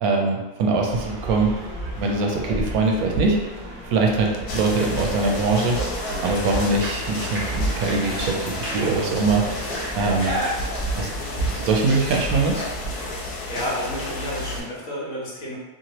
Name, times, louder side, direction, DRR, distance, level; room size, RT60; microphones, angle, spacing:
voice 1, 0.0-1.5 2.0-3.4 3.9-5.8 6.2-9.4 9.9-10.3 11.0-11.1 11.4-12.7, right 3 dB, 75° right, 0 dB, 1.0 m, -22 dB
sound 1, 0.8-13.4, right 2 dB, 35° right, 1.0 m, -31 dB
sound 2, 4.5-14.6, left 2 dB, 80° left, 1.2 m, -32 dB
voice 2, 13.5-15.5, equal, 60° left, -5 dB, 1.2 m, -30 dB
2.8 x 2.7 x 2.9 m, 1.1 s
omnidirectional pair, 1.6 m